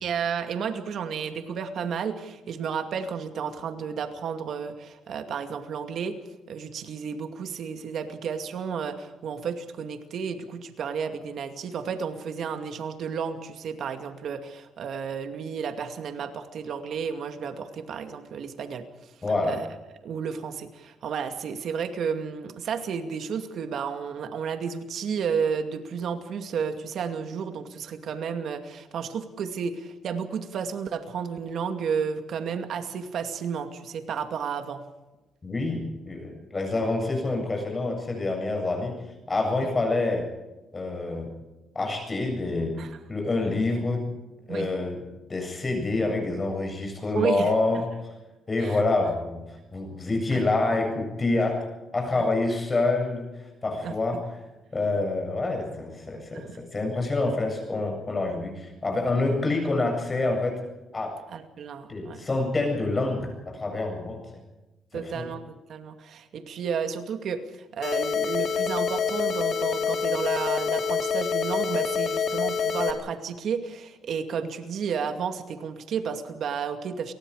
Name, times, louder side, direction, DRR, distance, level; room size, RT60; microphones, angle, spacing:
voice 1, 0.0-6.2 6.5-18.8 19.5-19.7 20.0-34.8 42.8-43.0 44.5-44.7 47.1-47.5 48.6-48.8 50.3-50.4 53.8-53.9 56.3-56.6 61.3-62.2 64.9-77.1, right 6 dB, 65° right, 7 dB, 2.4 m, -32 dB
voice 2, 19.2-19.6 35.4-39.0 39.3-40.3 40.7-41.3 41.7-42.8 43.1-44.1 44.5-45.0 45.3-47.9 48.5-49.4 49.7-51.6 51.9-54.2 54.7-60.6 60.9-61.2 61.9-64.2 64.9-65.2, left 2 dB, 30° left, 3 dB, 7.8 m, -27 dB
sound 1, 67.8-72.9, left 6 dB, 60° left, 3.1 m, -26 dB
29.0 x 19.5 x 5.0 m, 1.1 s
cardioid pair, 90°, 0 cm